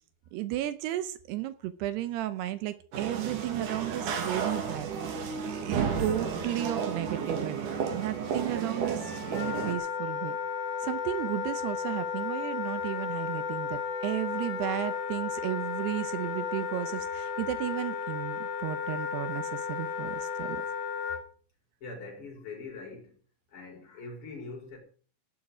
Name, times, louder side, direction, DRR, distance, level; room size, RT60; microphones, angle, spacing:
voice 1, 0.3-4.9 5.4-10.4 10.8-20.6, right 14 dB, 80° right, 12 dB, 2.5 m, -34 dB
sound 1, 2.9-9.8, right 6 dB, 50° right, 3.1 m, -32 dB
Wind instrument woodwind instrument, 9.0-21.2, left 6 dB, 70° left, 4.2 m, -34 dB
voice 2, 21.8-23.1 23.5-24.8, left 3 dB, 25° left, 0 dB, 5.8 m, -43 dB
16.5 x 11.5 x 4.9 m, 0.43 s
omnidirectional pair, 5.5 m